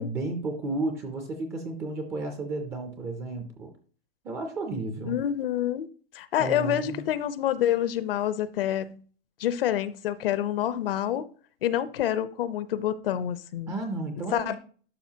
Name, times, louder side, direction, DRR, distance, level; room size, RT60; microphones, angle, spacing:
voice 1, 0.0-3.7 4.2-5.1 6.4-7.1 13.7-14.6, right 2 dB, 10° right, 0.3 m, -33 dB
voice 2, 5.1-5.9 6.1-9.0 9.4-11.2 11.6-13.8 14.3-14.6, left 11 dB, 65° left, 0.7 m, -27 dB
12.0 x 5.1 x 2.8 m
hypercardioid pair, 160°, 30 cm